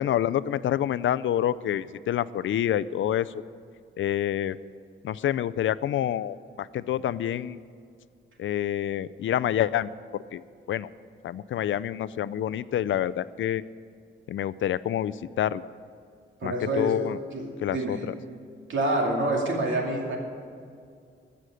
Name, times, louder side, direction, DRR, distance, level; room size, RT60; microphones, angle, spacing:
voice 1, 0.0-3.4 4.0-4.6 5.0-7.6 8.4-9.9 10.3-10.4 10.7-10.9 11.2-13.6 14.3-15.7 16.4-17.2 17.6-18.1, left 11 dB, 75° left, 16 dB, 0.4 m, -27 dB
voice 2, 16.4-18.0 18.7-20.2, right 2 dB, 75° right, 0 dB, 2.5 m, -27 dB
14.5 x 6.5 x 9.8 m, 2.3 s
wide cardioid pair, 155°, 20 cm